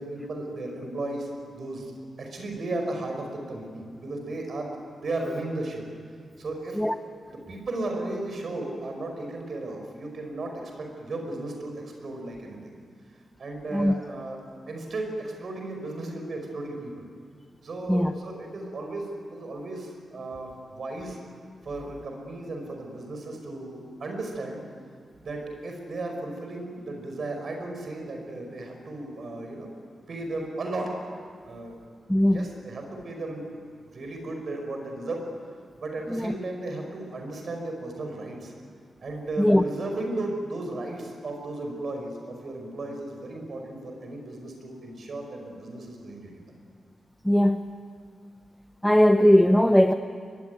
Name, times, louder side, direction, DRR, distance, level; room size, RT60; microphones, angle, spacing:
voice 1, 0.0-1.9 2.2-5.8 6.4-6.8 7.3-12.7 13.4-14.4 14.7-17.1 17.6-21.2 21.6-24.6 25.2-29.7 30.1-30.9 31.4-31.8 32.2-33.5 33.9-35.2 35.8-38.5 39.0-46.4, right 2 dB, 45° right, 2 dB, 5.4 m, -35 dB
voice 2, 32.1-32.5 36.1-36.3 39.4-39.6 47.2-47.7 48.8-49.9, equal, 5° left, 7 dB, 0.7 m, -19 dB
23.5 x 22.5 x 9.5 m, 2.1 s
wide cardioid pair, 165°, 0 cm